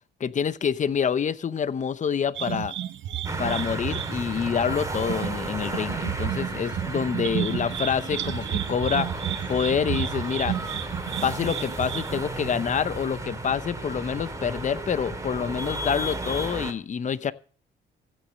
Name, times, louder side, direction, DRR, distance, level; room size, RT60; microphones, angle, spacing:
voice 1, 0.2-2.7 3.4-9.1 9.5-10.6 11.2-17.3, left 7 dB, 40° left, 0.8 m, -27 dB
sound 1, 2.3-12.2, right 11 dB, 70° right, 1.0 m, -32 dB
sound 2, 3.2-16.7, right 2 dB, 15° right, 2.5 m, -34 dB
15.5 x 6.6 x 6.4 m
cardioid pair, 90°, 20 cm